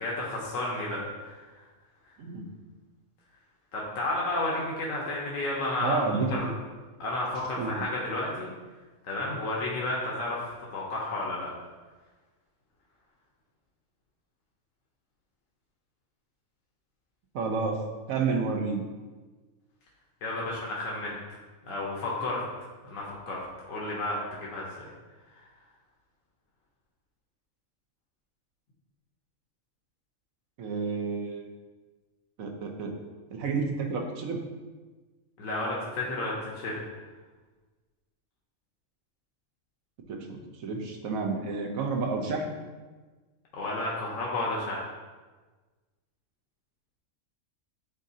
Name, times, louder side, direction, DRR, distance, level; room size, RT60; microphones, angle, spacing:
voice 1, 0.0-1.5 3.7-6.0 6.3-6.5 7.0-8.5 9.1-11.5 20.2-21.2 21.7-22.4 22.8-23.4 23.7-24.9 25.3-25.4 35.4-36.8 43.5-44.9, left 2 dB, 75° left, -4 dB, 1.3 m, -32 dB
voice 2, 5.8-6.5 7.6-7.7 17.3-17.8 18.1-18.8 30.6-31.5 32.4-32.9 33.3-34.4 40.1-42.5, right 4 dB, 90° right, 3 dB, 1.2 m, -30 dB
9.3 x 3.7 x 2.8 m, 1.3 s
omnidirectional pair, 1.4 m